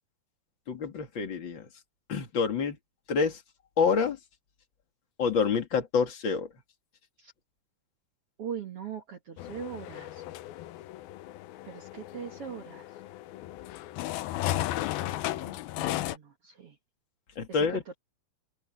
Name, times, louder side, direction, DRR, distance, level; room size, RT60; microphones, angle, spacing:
voice 1, 0.7-1.7 2.1-2.8 3.1-3.4 3.8-4.2 5.2-6.5 17.4-17.8, left 5 dB, 40° left, 2.0 m, -27 dB
voice 2, 8.4-10.2 11.6-12.9 15.3-16.7 17.5-17.8, right 8 dB, 75° right, 1.3 m, -41 dB
sound 1, 9.4-16.2, left 15 dB, 80° left, 2.2 m, -35 dB
open air
omnidirectional pair, 5.1 m